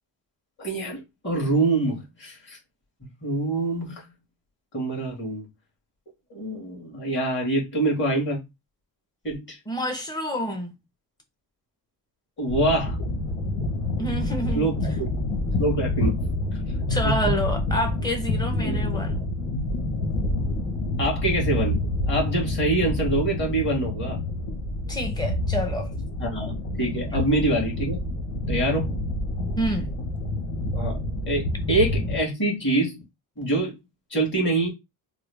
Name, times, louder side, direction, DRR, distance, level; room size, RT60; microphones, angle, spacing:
voice 1, 0.6-2.6 3.2-4.0 4.7-5.5 6.3-8.4 9.2-9.6 12.4-13.0 14.5-15.1 15.6-16.1 17.0-17.3 18.6-18.8 21.0-21.8 22.1-24.2 26.2-28.0 28.5-28.9 30.7-31.0 31.3-33.0 33.4-33.7 34.1-34.7, right 2 dB, 30° left, 1.9 m, -25 dB
voice 2, 9.7-10.7 14.0-14.7 16.9-19.2 24.9-25.9 29.6-29.9, equal, 10° left, 0.9 m, -28 dB
sound 1, 12.5-32.2, left 2 dB, 75° left, 1.3 m, -27 dB
3.6 x 2.0 x 3.4 m
cardioid pair, 135°, 39 cm